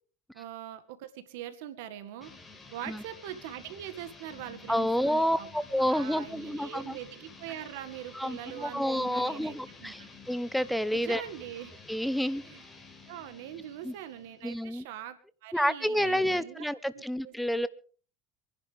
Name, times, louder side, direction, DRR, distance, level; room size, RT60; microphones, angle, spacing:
voice 1, 0.3-2.3 2.7-5.5 5.9-10.1 10.9-11.7 12.4-12.6 13.1-16.6 16.9-17.3, right 11 dB, 75° right, 10 dB, 1.9 m, -42 dB
sound 1, 2.2-14.7, left 3 dB, 25° left, 4.6 m, -51 dB
voice 2, 4.7-7.0 8.1-11.2 11.9-12.4 13.8-13.9 14.4-14.8 15.5-17.7, equal, ahead, 17 dB, 0.9 m, -29 dB
27.0 x 11.0 x 3.5 m, 0.41 s
hypercardioid pair, 80°, 0 cm